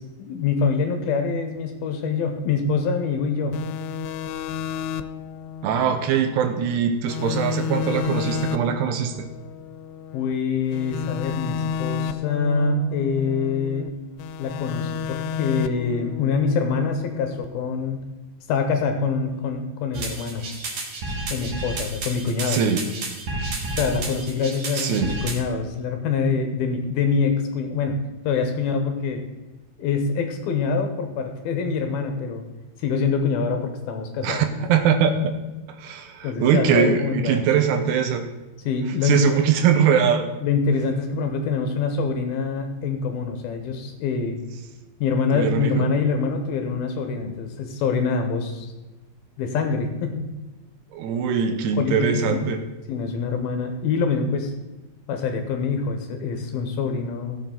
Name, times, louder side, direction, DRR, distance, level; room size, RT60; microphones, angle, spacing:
voice 1, 0.0-3.6 10.1-13.9 14.4-18.0 18.5-20.4 21.3-22.6 23.7-28.0 28.2-29.2 29.8-32.4 32.8-34.4 36.2-37.4 38.7-39.4 40.4-44.4 45.0-48.7 49.4-50.4 51.8-52.4 52.9-54.5 55.1-57.4, left 5 dB, 70° left, 5 dB, 2.7 m, -25 dB
sound 1, 3.5-6.8 7.1-10.3 10.7-13.9 14.2-17.5, left 7 dB, 85° left, 2.8 m, -31 dB
voice 2, 5.6-9.2 22.5-22.8 24.8-25.1 34.2-35.3 35.7-38.3 39.0-40.3 45.3-45.8 50.9-52.6, right 7 dB, 80° right, 7 dB, 3.0 m, -22 dB
sound 2, 19.9-25.4, right 2 dB, 50° right, 2.2 m, -31 dB
16.5 x 7.5 x 3.9 m, 1.1 s
omnidirectional pair, 4.9 m